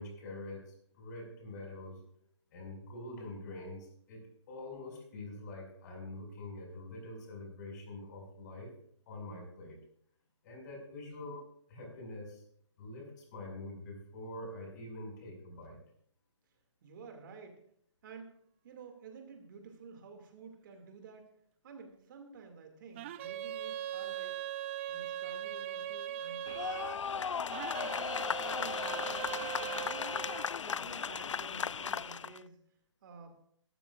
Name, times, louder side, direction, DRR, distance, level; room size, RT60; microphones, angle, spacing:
voice 1, 0.0-2.0 2.5-4.2 4.5-8.7 9.1-9.8 10.4-11.4 11.7-12.4 12.8-15.8, left 2 dB, 35° left, 1 dB, 5.9 m, -45 dB
voice 2, 16.8-17.6 18.0-18.3 18.6-21.3 21.6-24.4 24.9-26.8 27.0-29.3 29.7-32.6 33.0-33.4, right 5 dB, 45° right, 4 dB, 2.5 m, -52 dB
sound 1, 22.9-27.0 27.5-30.5, right 12 dB, 25° right, 0.4 m, -40 dB
sound 2, 26.5-32.4, left 7 dB, 80° left, 0.4 m, -36 dB
21.0 x 13.0 x 2.5 m, 0.66 s
figure-of-eight pair, 140°, 16 cm